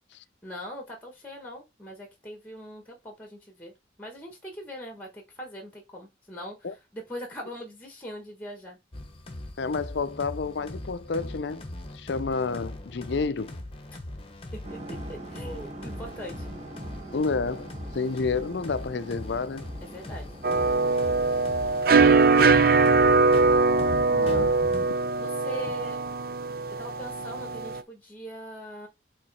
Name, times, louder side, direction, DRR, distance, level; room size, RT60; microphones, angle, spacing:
voice 1, 0.4-3.7 4.0-8.8 14.5-16.5 19.8-20.4 22.0-22.5 25.2-26.0 26.8-28.9, equal, 10° left, 1.4 m, -41 dB
sound 1, 8.9-24.9, left 1 dB, 30° left, 1.0 m, -39 dB
voice 2, 9.6-11.6 11.9-13.6 17.1-19.7 24.1-24.6, left 4 dB, 65° left, 0.5 m, -30 dB
sound 2, 14.6-22.2, right 1 dB, 35° right, 1.6 m, -44 dB
sound 3, 20.4-27.8, right 4 dB, 50° right, 0.6 m, -22 dB
7.6 x 4.0 x 4.2 m
head